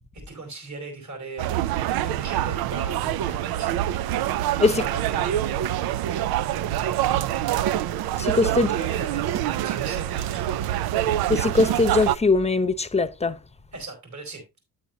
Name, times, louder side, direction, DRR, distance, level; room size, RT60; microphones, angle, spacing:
voice 1, 0.3-3.8 4.7-5.6 8.5-9.3 9.6-10.6 13.7-14.6, right 3 dB, 50° right, 4.3 m, -38 dB
sound 1, 1.4-12.2, right 12 dB, 90° right, 0.5 m, -25 dB
voice 2, 8.2-8.7 11.3-13.4, left 3 dB, 20° left, 0.8 m, -21 dB
9.2 x 8.6 x 2.7 m
cardioid pair, 65°, 36 cm